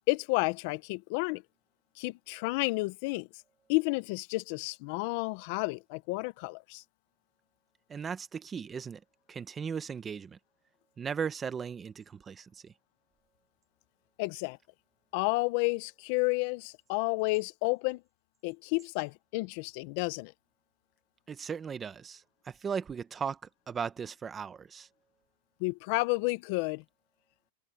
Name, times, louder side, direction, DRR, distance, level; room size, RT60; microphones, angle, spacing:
voice 1, 0.1-1.4 2.0-3.3 3.7-6.8 14.2-14.6 15.1-18.0 18.4-20.3 25.6-26.8, left 25 dB, 40° left, 0.5 m, -31 dB
voice 2, 7.9-9.0 9.3-10.4 11.0-12.7 21.3-23.4 23.7-24.9, right 6 dB, 15° right, 0.8 m, -37 dB
supercardioid pair, 170°, 0 cm